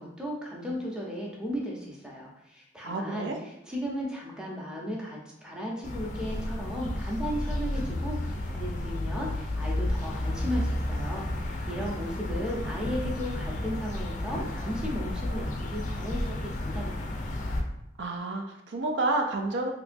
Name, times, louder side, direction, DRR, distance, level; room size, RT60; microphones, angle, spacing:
voice 1, 0.0-17.2, equal, 5° right, -3 dB, 0.7 m, -35 dB
voice 2, 2.8-3.4 18.0-19.7, right 2 dB, 80° right, 3 dB, 0.4 m, -29 dB
sound 1, 5.8-17.6, left 1 dB, 45° left, 0.4 m, -32 dB
3.4 x 2.9 x 2.5 m, 0.81 s
head